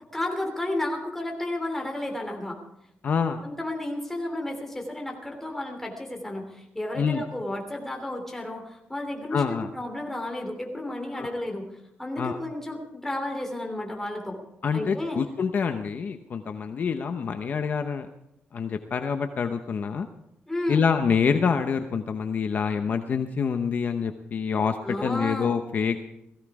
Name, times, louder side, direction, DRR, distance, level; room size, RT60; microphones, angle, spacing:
voice 1, 0.1-2.6 3.4-14.4 14.7-15.2 20.5-20.8 24.8-25.5, left 1 dB, 10° left, 1 dB, 3.1 m, -32 dB
voice 2, 3.0-3.4 7.0-7.2 9.3-9.7 11.1-11.3 12.2-12.4 14.6-18.1 18.5-20.1 20.7-26.1, left 6 dB, 45° left, 7 dB, 0.8 m, -26 dB
18.0 x 15.5 x 4.9 m, 0.86 s
wide cardioid pair, 150°, 4 cm